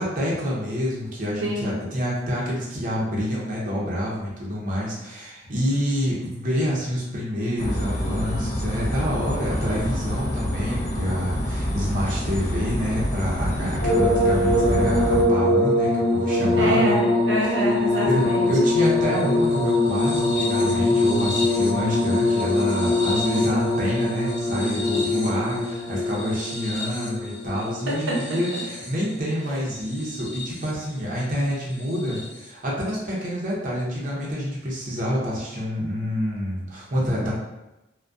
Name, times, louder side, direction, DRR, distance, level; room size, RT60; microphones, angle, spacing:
voice 1, 0.0-16.9 18.0-37.3, equal, 45° right, -5 dB, 0.6 m, -27 dB
voice 2, 1.4-1.8 13.8-13.9 16.4-18.7 27.9-28.6, right 1 dB, 85° right, -3 dB, 0.7 m, -26 dB
sound 1, 7.6-15.2, equal, 40° left, 0.4 m, -27 dB
sound 2, 13.8-29.1 29.9-30.6 32.1-32.2, left 1 dB, 70° left, 0.8 m, -23 dB
2.3 x 2.1 x 2.5 m, 0.96 s
head